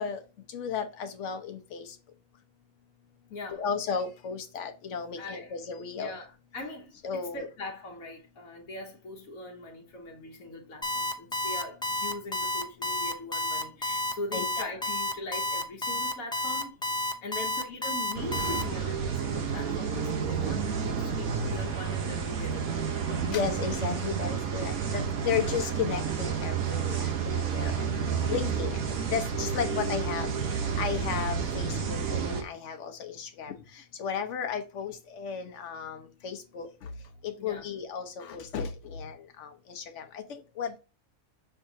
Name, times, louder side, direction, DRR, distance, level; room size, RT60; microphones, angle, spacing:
voice 1, 0.0-2.0 3.5-6.1 7.0-7.5 14.3-14.7 23.1-28.8 29.1-36.9 37.2-40.8, left 6 dB, 60° left, 1.1 m, -34 dB
voice 2, 3.3-3.6 5.2-5.5 5.9-23.0 24.8-25.0 28.7-28.8 29.6-29.8 37.4-37.7, left 2 dB, 80° left, 1.4 m, -41 dB
Alarm, 10.8-18.6, left 1 dB, 5° left, 0.3 m, -30 dB
sound 1, 18.2-32.4, right 6 dB, 85° right, 1.4 m, -30 dB
5.6 x 3.5 x 2.7 m
omnidirectional pair, 1.4 m